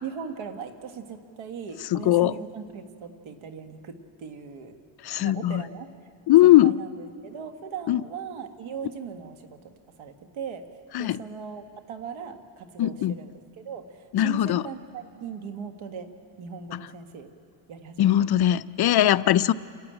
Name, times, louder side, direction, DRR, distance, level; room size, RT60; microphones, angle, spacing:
voice 1, 0.0-4.7 5.2-5.9 6.4-9.6 10.0-10.7 11.0-16.1 16.4-17.3 17.7-18.3 19.5-19.6, right 6 dB, 80° right, 7 dB, 1.7 m, -39 dB
voice 2, 1.9-2.3 5.0-5.6 6.3-6.8 7.9-8.0 10.9-11.2 12.8-13.2 14.1-14.6 18.0-19.5, left 13 dB, 55° left, 16 dB, 0.5 m, -20 dB
27.5 x 13.0 x 8.9 m, 2.4 s
cardioid pair, 125°, 47 cm